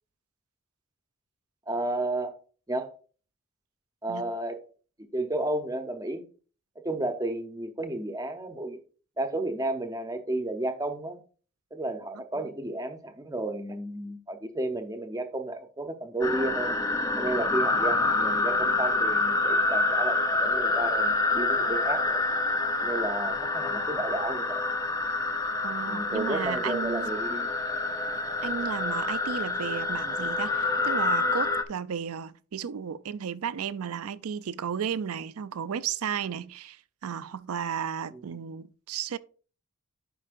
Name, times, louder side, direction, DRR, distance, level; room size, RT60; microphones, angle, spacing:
voice 1, 1.7-2.4 2.7-3.0 4.0-4.6 5.1-6.3 6.8-8.8 9.2-11.2 11.7-16.8 17.2-22.2 22.8-24.7 25.9-27.5 38.1-38.2, right 2 dB, 15° right, 0.7 m, -32 dB
sound 1, 16.2-31.6, left 2 dB, 15° left, 0.5 m, -27 dB
voice 2, 25.6-27.1 28.4-39.2, right 7 dB, 75° right, 0.4 m, -34 dB
11.0 x 5.4 x 2.5 m
head